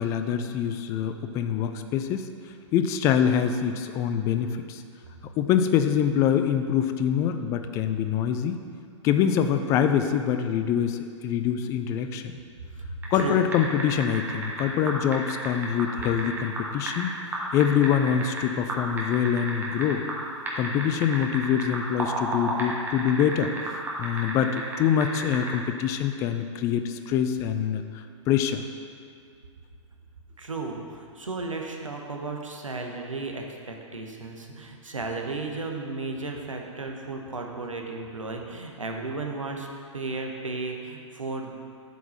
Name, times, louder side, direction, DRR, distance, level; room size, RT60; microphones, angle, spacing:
voice 1, 0.0-2.2 2.7-4.8 5.4-8.6 9.0-12.3 13.1-17.1 17.5-20.0 20.6-23.5 24.0-28.6, left 8 dB, 20° left, 8 dB, 0.3 m, -25 dB
voice 2, 12.8-13.4 30.4-39.7 39.9-41.5, right 3 dB, 75° right, 2 dB, 1.0 m, -34 dB
sound 1, 13.0-13.2 13.5-17.0 17.3-18.4 18.7-20.2 20.5-24.8 25.0-25.5, right 2 dB, 10° right, 1.3 m, -31 dB
8.1 x 4.6 x 5.7 m, 2.3 s
figure-of-eight pair, 110°, 16 cm